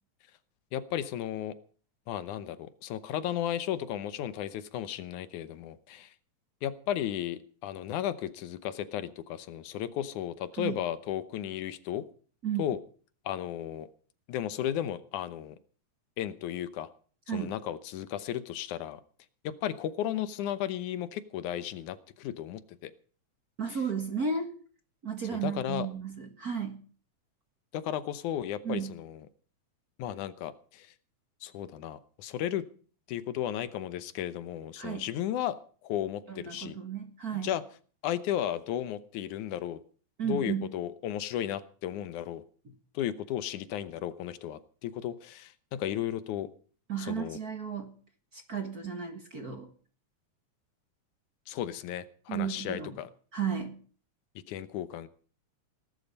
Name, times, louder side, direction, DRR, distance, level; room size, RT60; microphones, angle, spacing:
voice 1, 0.7-1.5 2.1-6.1 6.6-12.0 12.6-12.8 13.3-13.9 14.3-15.6 16.2-16.9 17.3-19.0 19.4-22.9 25.3-25.9 27.7-29.2 30.0-30.9 31.4-32.6 33.1-35.6 35.8-36.8 37.4-37.6 38.0-39.8 40.2-42.4 42.9-46.5 47.1-47.4 51.5-53.1 54.5-55.1, left 11 dB, 80° left, 14 dB, 2.4 m, -34 dB
voice 2, 23.6-24.5 25.0-26.8 28.6-28.9 34.8-35.1 36.3-37.5 40.2-40.7 42.6-42.7 46.9-47.9 48.3-49.7 52.3-53.0 53.3-53.8, right 7 dB, 40° right, 6 dB, 1.5 m, -34 dB
19.5 x 11.5 x 5.3 m, 0.43 s
omnidirectional pair, 3.4 m